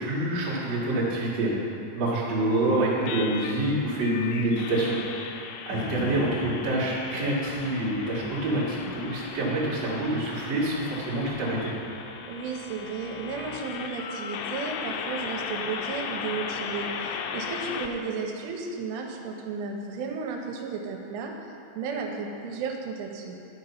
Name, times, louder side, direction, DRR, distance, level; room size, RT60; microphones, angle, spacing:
voice 1, 0.0-1.5 1.9-5.0 5.7-11.7, right 1 dB, 45° right, -8 dB, 2.3 m, -27 dB
sound 1, 3.0-17.9, left 6 dB, 85° left, 2.9 m, -37 dB
sound 2, 5.7-13.8 14.3-14.4, left 1 dB, 65° left, 1.0 m, -43 dB
voice 2, 12.3-23.4, right 5 dB, 85° right, 2 dB, 3.2 m, -34 dB
11.5 x 5.5 x 5.7 m, 2.7 s
omnidirectional pair, 5.5 m